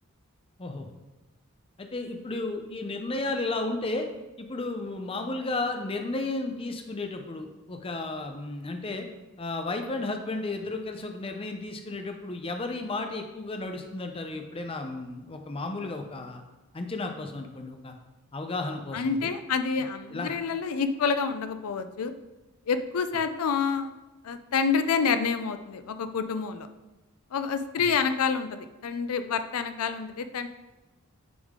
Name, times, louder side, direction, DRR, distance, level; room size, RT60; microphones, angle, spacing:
voice 1, 1.8-4.1 4.4-9.1 9.4-16.4 16.7-17.9 18.3-19.3 20.1-20.3, left 2 dB, 25° left, 5 dB, 0.5 m, -33 dB
voice 2, 18.9-22.1 22.7-23.9 24.2-26.7 27.3-30.5, left 5 dB, 90° left, 10 dB, 0.5 m, -28 dB
9.5 x 3.6 x 3.6 m, 1.1 s
head